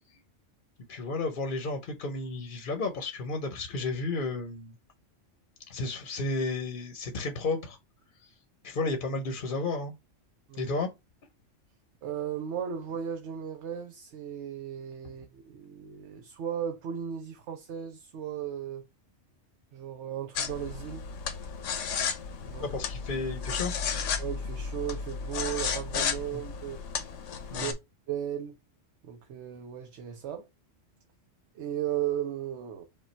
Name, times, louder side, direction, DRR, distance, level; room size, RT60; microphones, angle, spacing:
voice 1, 0.9-4.8 5.7-7.8 8.2-8.3 8.6-9.9 10.6-10.9 22.6-23.7 26.3-26.4 27.5-27.7, left 3 dB, 50° left, 0.8 m, -32 dB
voice 2, 12.0-18.9 19.7-21.0 22.4-22.8 24.2-26.8 27.5-27.7 28.1-28.6 29.0-30.5 31.5-32.8, right 9 dB, 70° right, 1.0 m, -36 dB
sound 1, 20.4-27.7, left 6 dB, 80° left, 1.1 m, -33 dB
5.3 x 2.3 x 4.2 m
omnidirectional pair, 1.3 m